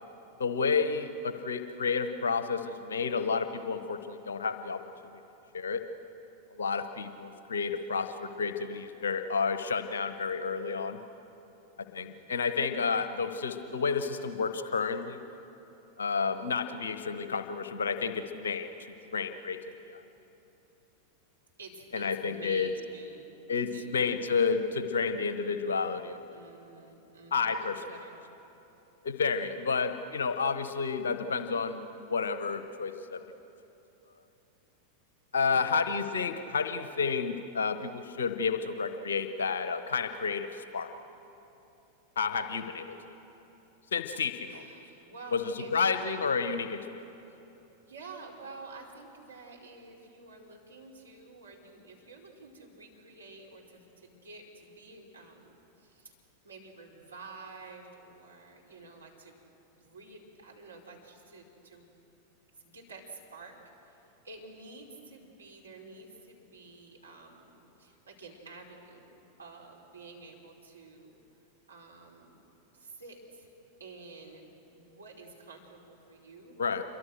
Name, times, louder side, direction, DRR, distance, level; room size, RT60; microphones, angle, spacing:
voice 1, 0.4-5.1 5.5-5.8 6.5-11.0 11.9-15.2 16.0-18.7 19.1-20.0 21.9-22.7 23.5-26.4 27.3-27.7 29.0-33.2 35.3-40.9 42.2-42.9 43.9-44.6 45.3-47.1 76.6-76.8, left 5 dB, 65° left, 10 dB, 1.1 m, -31 dB
voice 2, 11.8-12.3 21.6-23.3 23.7-24.0 26.3-27.5 27.9-28.2 35.5-35.7 44.5-46.0 47.9-56.2 56.4-59.4 59.8-62.0 62.6-71.2 71.7-72.4 72.7-73.5 73.8-76.5, right 3 dB, 75° right, -1 dB, 4.7 m, -50 dB
27.5 x 23.5 x 6.5 m, 3.0 s
figure-of-eight pair, 90°, 0 cm